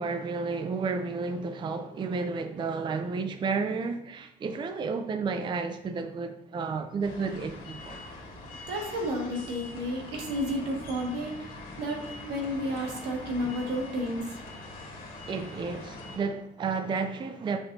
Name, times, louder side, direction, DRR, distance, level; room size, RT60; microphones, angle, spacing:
voice 1, 0.0-8.0 15.3-17.6, right 4 dB, 30° right, 0.5 m, -32 dB
sound 1, 7.0-16.2, left 2 dB, 55° left, 2.2 m, -43 dB
voice 2, 8.7-14.4, equal, 85° right, 1.7 m, -32 dB
6.9 x 5.5 x 2.6 m
cardioid pair, 110°, 17 cm